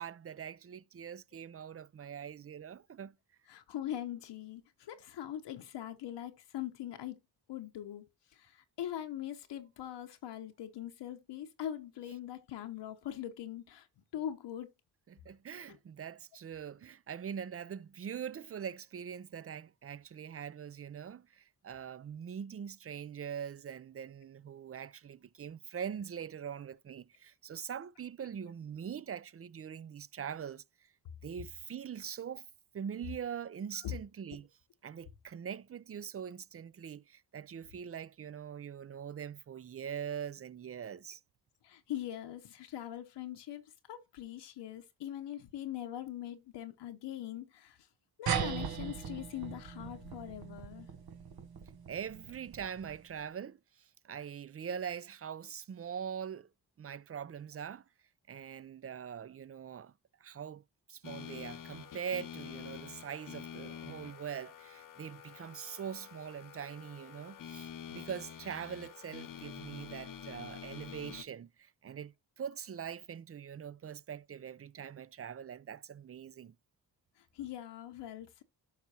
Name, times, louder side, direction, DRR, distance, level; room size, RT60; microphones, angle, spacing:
voice 1, 0.0-3.1 15.1-30.6 31.2-32.5 32.7-34.5 34.8-41.2 51.9-56.5 56.8-57.8 58.3-59.9 60.2-60.6 60.9-76.6, right 8 dB, 35° right, 0.5 m, -43 dB
voice 2, 3.5-7.2 7.5-8.1 8.3-13.9 14.1-14.7 15.7-15.8 33.8-33.9 41.6-43.6 43.9-47.8 48.2-50.9 77.2-78.4, left 11 dB, 80° left, 0.9 m, -42 dB
sound 1, 48.3-53.1, right 7 dB, 60° right, 1.1 m, -39 dB
sound 2, 61.0-71.2, left 8 dB, 50° left, 0.7 m, -47 dB
11.5 x 5.6 x 2.8 m
cardioid pair, 55°, 41 cm